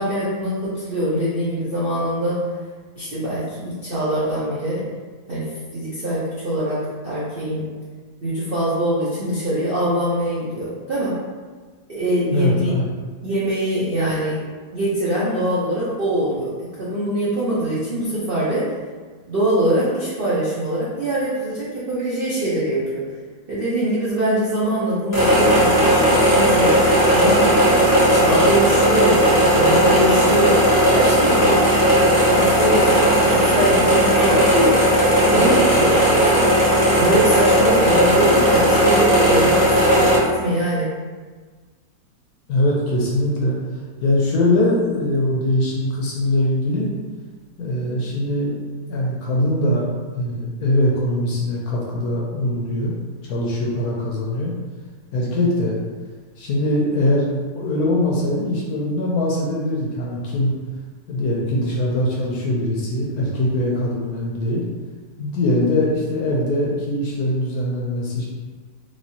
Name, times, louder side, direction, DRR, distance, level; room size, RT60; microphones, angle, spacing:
voice 1, 0.0-2.4 3.0-4.8 5.3-7.6 8.2-11.1 11.9-12.7 13.2-14.4 14.7-18.7 19.3-23.0 23.5-27.4 28.1-30.6 30.9-31.9 32.3-34.8 35.2-36.5 36.9-40.9, right 1 dB, 75° right, -9 dB, 0.5 m, -23 dB
voice 2, 12.3-12.9 42.5-43.6 44.0-46.9 47.6-48.5 48.9-49.8 50.1-52.9 53.3-54.5 55.1-55.8 56.4-60.5 61.1-64.6 65.2-68.2, left 1 dB, 70° left, -3 dB, 1.0 m, -21 dB
sound 1, 25.1-40.2, equal, 20° left, 0.6 m, -16 dB
3.3 x 3.1 x 2.7 m, 1.4 s
omnidirectional pair, 2.0 m